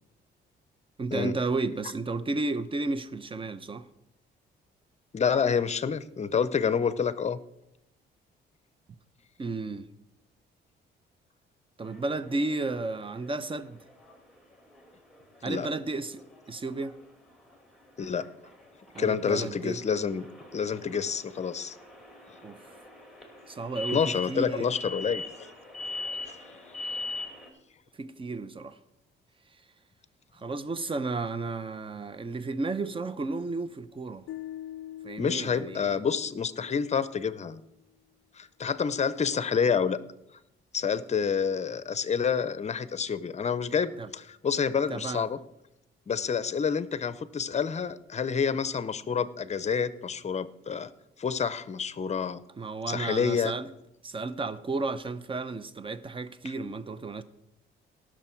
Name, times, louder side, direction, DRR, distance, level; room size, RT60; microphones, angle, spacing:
voice 1, 1.0-3.9 9.4-9.8 11.8-13.8 15.4-17.0 18.9-19.8 22.4-22.6 23.5-24.7 28.0-28.8 30.4-34.3 35.0-35.9 44.0-44.1 44.9-45.3 52.6-53.7 54.0-57.2, right 3 dB, 25° right, 0.8 m, -33 dB
voice 2, 5.1-7.4 15.5-15.7 18.0-18.3 19.0-21.8 23.9-25.5 26.3-26.4 35.2-37.6 38.4-40.0 40.7-45.4 46.1-50.9 51.2-52.4 52.9-53.5, left 6 dB, 35° left, 0.7 m, -28 dB
sound 1, 11.8-27.5, left 2 dB, ahead, 2.6 m, -42 dB
sound 2, 34.3-37.4, left 12 dB, 85° left, 0.4 m, -44 dB
18.0 x 6.3 x 4.5 m
cardioid pair, 90°, 20 cm